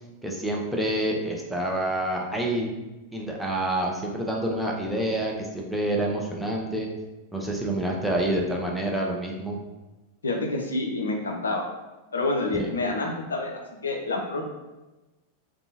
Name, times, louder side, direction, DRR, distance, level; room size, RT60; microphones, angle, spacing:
voice 1, 0.2-2.7 3.1-6.9 7.3-9.6 12.6-12.7, right 1 dB, ahead, -1 dB, 0.4 m, -27 dB
voice 2, 10.2-11.7 12.1-13.5 13.8-14.4, left 2 dB, 70° left, 1 dB, 0.4 m, -27 dB
2.6 x 2.2 x 2.7 m, 1.1 s
figure-of-eight pair, 90°, 0 cm